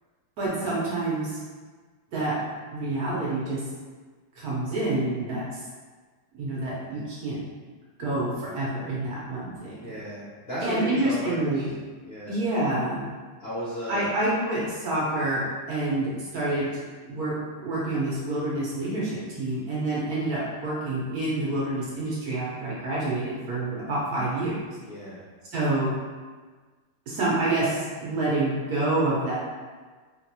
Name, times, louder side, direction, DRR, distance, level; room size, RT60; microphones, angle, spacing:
voice 1, 0.4-1.4 2.1-2.3 2.7-3.6 4.4-5.4 6.4-7.4 8.0-9.8 10.6-11.7 12.3-13.0 13.9-16.7 17.1-19.1 19.4-24.5 25.5-25.9 27.1-29.4, right 2 dB, 60° right, -7 dB, 1.1 m, -27 dB
voice 2, 9.8-11.7 12.0-12.4 13.4-14.1 24.8-25.2, right 1 dB, 60° left, -11 dB, 0.6 m, -35 dB
3.6 x 2.5 x 2.7 m, 1.4 s
omnidirectional pair, 2.2 m